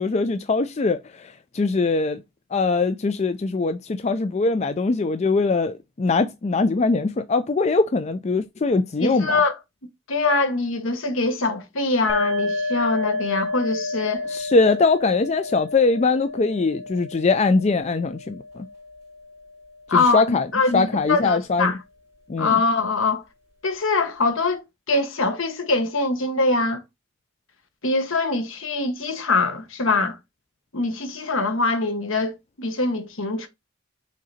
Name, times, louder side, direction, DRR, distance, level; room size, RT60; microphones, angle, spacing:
voice 1, 0.0-2.2 2.5-9.4 14.3-18.7 19.9-20.5 20.7-21.7 22.3-22.5, left 3 dB, 30° left, 0.4 m, -22 dB
voice 2, 9.0-9.5 10.1-14.3 19.9-21.8 22.4-23.2 23.6-24.6 24.9-26.8 27.8-30.2 30.7-32.3 32.6-33.5, left 3 dB, 65° left, 1.2 m, -23 dB
sound 1, 12.1-19.6, left 2 dB, 15° right, 3.2 m, -30 dB
6.4 x 3.9 x 4.1 m
head